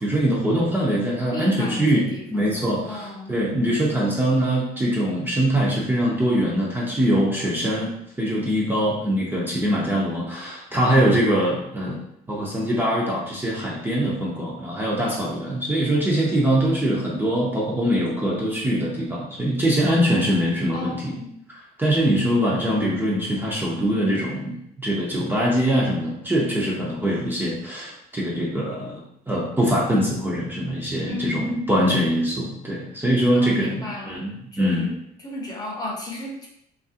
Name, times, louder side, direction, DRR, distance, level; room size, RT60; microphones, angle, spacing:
voice 1, 0.0-7.9 8.2-12.0 12.3-21.2 21.5-34.9, equal, 10° right, -5 dB, 0.6 m, -23 dB
voice 2, 1.3-3.3 20.7-21.3 31.0-31.7 33.3-34.2 34.5-34.9 35.2-36.5, left 2 dB, 25° left, -3 dB, 0.8 m, -34 dB
2.9 x 2.4 x 2.7 m, 0.77 s
cardioid pair, 110°, 17 cm